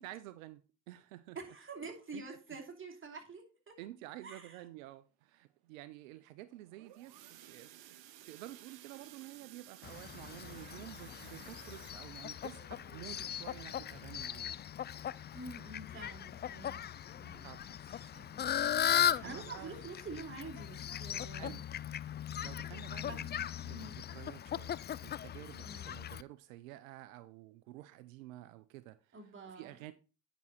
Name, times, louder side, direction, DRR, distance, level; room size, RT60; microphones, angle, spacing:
voice 1, 0.0-1.4 2.1-2.2 3.8-8.0 8.3-14.6 17.4-17.7 18.9-19.8 21.4-21.6 22.4-29.2 29.5-29.9, right 15 dB, 85° right, 0.5 m, -50 dB
voice 2, 1.3-3.8 4.2-4.6 15.3-18.5 19.2-21.6 23.0-23.2 23.7-24.0 25.6-26.0 29.1-29.8, right 3 dB, 30° right, 2.8 m, -48 dB
sound 1, 6.5-15.2 15.6-15.9 16.1-16.2 16.7-16.8, right 12 dB, 70° right, 0.9 m, -57 dB
Fowl, 9.8-26.2, left 10 dB, 30° left, 0.3 m, -38 dB
9.3 x 5.9 x 4.1 m
hypercardioid pair, 50°, 39 cm